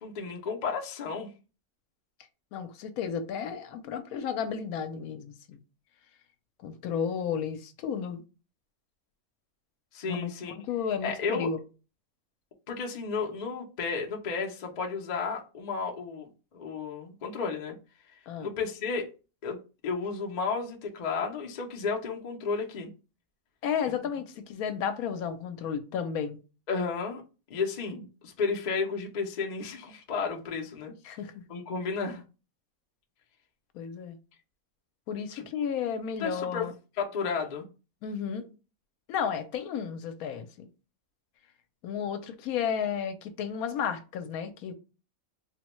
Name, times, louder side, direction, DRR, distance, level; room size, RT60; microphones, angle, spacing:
voice 1, 0.0-1.3 9.9-10.5 11.0-11.5 12.7-17.8 18.4-19.1 19.4-22.9 23.8-23.9 26.7-27.2 27.5-30.9 31.5-32.2 35.3-35.5 36.2-36.7 37.0-37.7, left 5 dB, 50° left, 0.5 m, -33 dB
voice 2, 2.5-5.6 6.6-8.2 10.1-11.6 18.3-18.5 23.6-26.4 31.0-31.4 33.7-34.2 35.1-36.7 38.0-38.5 39.1-40.7 41.8-44.7, left 7 dB, 80° left, 1.0 m, -33 dB
3.6 x 2.1 x 3.0 m
omnidirectional pair, 1.5 m